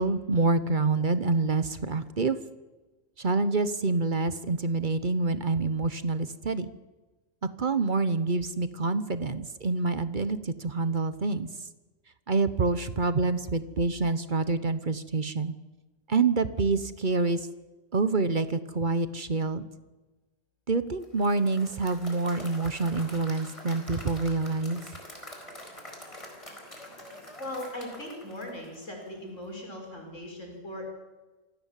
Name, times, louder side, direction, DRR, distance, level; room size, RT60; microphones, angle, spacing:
voice 1, 0.0-2.4 3.2-6.7 7.6-11.5 12.3-15.5 16.1-17.5 17.9-19.7 20.7-24.8, right 3 dB, 40° right, 13 dB, 1.1 m, -27 dB
Applause / Crowd, 21.0-29.2, left 1 dB, 25° left, 4.7 m, -46 dB
voice 2, 27.4-30.8, left 1 dB, 70° left, 1 dB, 6.0 m, -39 dB
27.0 x 16.5 x 7.5 m, 1.2 s
omnidirectional pair, 1.3 m